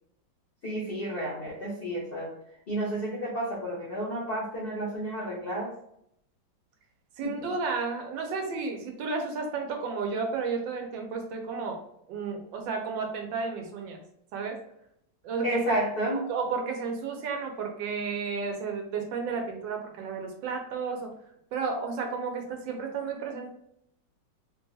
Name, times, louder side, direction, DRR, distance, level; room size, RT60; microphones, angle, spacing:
voice 1, 0.6-2.3 2.7-5.7 7.2-7.4 15.4-16.2, right 1 dB, 50° left, -5 dB, 0.7 m, -31 dB
voice 2, 7.2-11.8 12.1-14.0 14.3-14.6 15.2-15.8 16.3-21.1 21.5-23.5, right 5 dB, 85° right, 3 dB, 1.3 m, -32 dB
3.4 x 2.3 x 2.6 m, 0.74 s
omnidirectional pair, 2.0 m